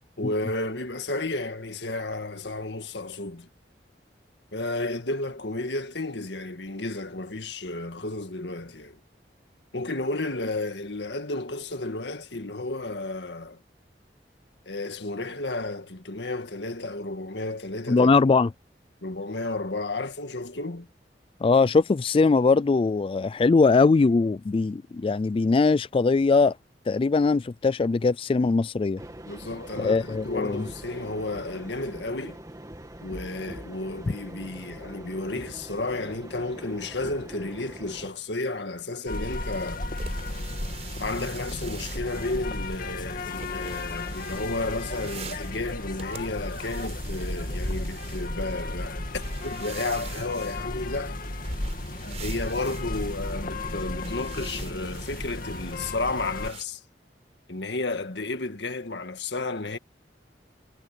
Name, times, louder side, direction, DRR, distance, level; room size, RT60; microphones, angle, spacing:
voice 1, 0.2-3.5 4.5-9.0 9.7-13.6 14.7-18.1 19.0-20.9 29.3-32.4 33.0-39.8 41.0-51.2 52.2-56.8 57.5-59.8, left 2 dB, 75° left, 1.9 m, -32 dB
voice 2, 17.9-18.5 21.4-26.6 26.9-29.0 29.8-30.7, left 4 dB, 30° left, 0.3 m, -21 dB
sound 1, 29.0-38.1, right 1 dB, 20° right, 2.3 m, -43 dB
sound 2, 39.1-56.5, left 2 dB, 50° left, 2.3 m, -34 dB
sound 3, 39.3-56.6, right 5 dB, 40° right, 4.4 m, -46 dB
head